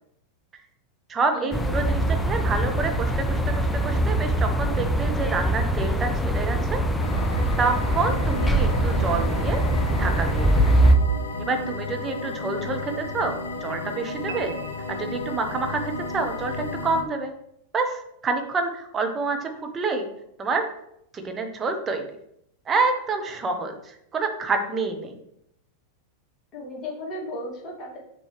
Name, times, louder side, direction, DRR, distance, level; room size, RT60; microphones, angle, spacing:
voice 1, 1.1-6.8 7.3-9.6 10.0-10.7 11.4-14.5 14.9-17.3 17.7-20.1 20.4-20.7 21.1-22.0 22.7-25.2, right 4 dB, 20° right, 5 dB, 1.0 m, -28 dB
sound 1, 1.5-11.0, right 1 dB, 10° left, 0.5 m, -23 dB
sound 2, 7.0-17.0, left 3 dB, 65° left, 0.5 m, -33 dB
sound 3, 14.3-15.8, right 7 dB, 55° right, 1.0 m, -41 dB
voice 2, 26.5-28.0, left 1 dB, 25° left, -4 dB, 2.3 m, -35 dB
6.4 x 4.5 x 3.2 m, 0.75 s
figure-of-eight pair, 90°, 0 cm